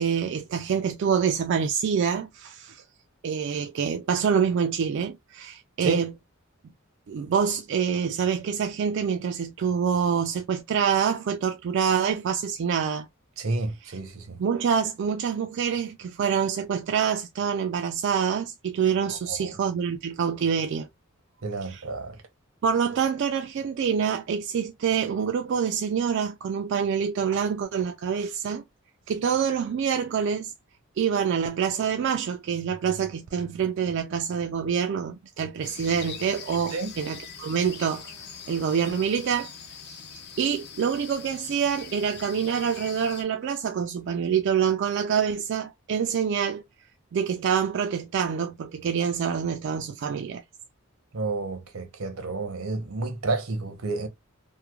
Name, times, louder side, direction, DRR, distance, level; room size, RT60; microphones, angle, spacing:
voice 1, 0.0-2.8 3.2-6.1 7.1-13.1 13.8-14.0 14.4-20.9 21.6-21.8 22.6-28.6 29.1-30.5 31.0-38.1 38.5-39.5 39.8-40.0 40.4-46.6 47.1-50.4, right 7 dB, 60° right, 0.3 m, -26 dB
voice 2, 13.4-14.4 19.3-19.6 21.4-22.2 36.7-36.9 51.1-54.1, right 3 dB, 85° right, 0.8 m, -30 dB
sound 1, 35.6-43.2, left 6 dB, 50° left, 0.7 m, -43 dB
3.0 x 2.1 x 2.2 m
head